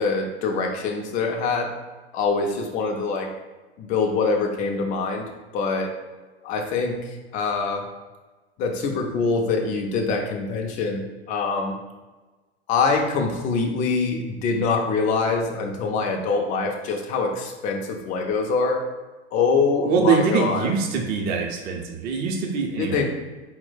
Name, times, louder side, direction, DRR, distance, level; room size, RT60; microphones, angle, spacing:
voice 1, 0.0-1.7 2.1-3.3 3.8-5.2 5.5-5.9 6.4-7.8 8.6-11.8 12.7-18.8 19.3-20.7 22.8-23.0, left 4 dB, 25° left, 2 dB, 0.5 m, -24 dB
voice 2, 19.8-23.1, right 5 dB, 30° right, 2 dB, 0.6 m, -23 dB
4.3 x 2.1 x 3.9 m, 1.2 s
figure-of-eight pair, 90°, 32 cm